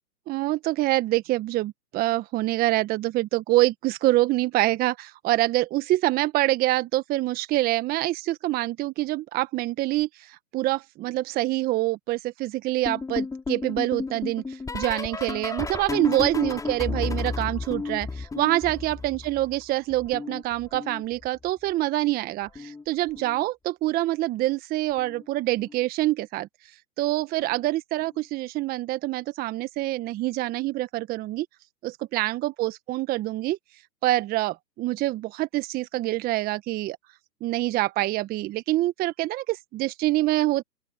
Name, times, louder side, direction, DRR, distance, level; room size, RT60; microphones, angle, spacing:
voice 1, 0.3-31.5 31.8-33.6 34.0-37.0 37.4-40.6, right 17 dB, 20° right, 1.3 m, -26 dB
sound 1, 12.8-19.6 19.9-21.5 22.5-22.8 23.1-23.4 25.0-25.2 25.6-25.8 27.4-27.5, left 4 dB, 5° left, 4.9 m, -33 dB
open air
hypercardioid pair, 130°, 49 cm